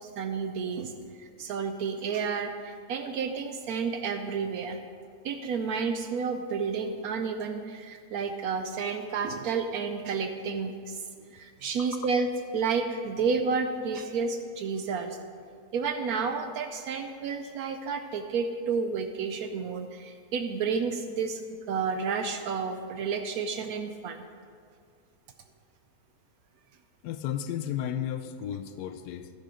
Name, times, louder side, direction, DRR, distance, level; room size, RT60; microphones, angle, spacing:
voice 1, 0.0-4.8 5.2-11.0 11.3-15.2 15.7-21.4 21.7-24.2, right 5 dB, 70° right, 7 dB, 1.0 m, -31 dB
voice 2, 11.8-12.1 27.0-29.3, left 10 dB, 85° left, 9 dB, 1.1 m, -34 dB
12.0 x 10.0 x 3.7 m, 2.2 s
omnidirectional pair, 1.7 m